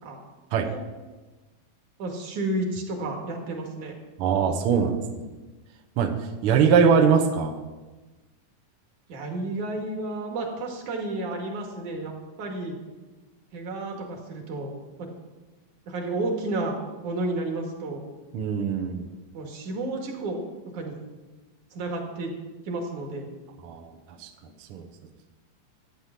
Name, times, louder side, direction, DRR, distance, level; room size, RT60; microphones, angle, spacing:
voice 1, 2.0-3.9 9.1-12.8 13.5-14.7 15.0-15.1 15.9-16.7 17.0-18.0 19.3-20.4 20.7-21.0 21.7-22.3 22.6-23.3, right 2 dB, 60° right, 1 dB, 3.2 m, -31 dB
voice 2, 4.2-5.3 6.0-6.1 6.4-7.5 18.3-19.1 23.6-24.3 24.7-24.9, right 6 dB, 75° right, 3 dB, 1.2 m, -22 dB
13.5 x 9.3 x 5.9 m, 1.2 s
omnidirectional pair, 4.0 m